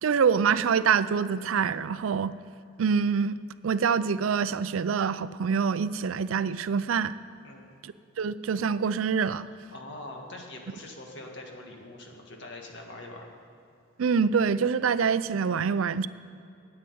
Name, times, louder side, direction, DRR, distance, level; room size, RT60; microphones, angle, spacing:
voice 1, 0.0-2.3 2.8-3.3 3.6-7.1 7.8-9.5 14.0-16.1, right 6 dB, 90° right, 15 dB, 0.4 m, -25 dB
voice 2, 7.4-7.7 9.7-13.3, left 2 dB, 60° left, 1 dB, 1.8 m, -43 dB
9.8 x 8.8 x 8.6 m, 2.6 s
head